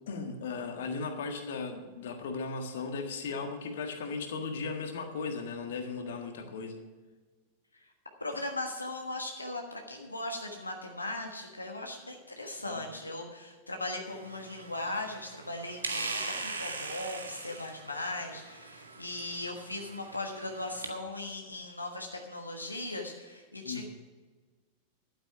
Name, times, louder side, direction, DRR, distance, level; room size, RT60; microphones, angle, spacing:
voice 1, 0.1-6.8 12.6-12.8 23.6-23.9, left 4 dB, 60° left, 5 dB, 1.5 m, -37 dB
voice 2, 8.2-23.9, left 2 dB, 85° left, 2 dB, 1.4 m, -38 dB
sound 1, 14.1-20.9, right 3 dB, 75° right, 1.4 m, -41 dB
12.0 x 9.0 x 5.8 m, 1.4 s
figure-of-eight pair, 90°, 0 cm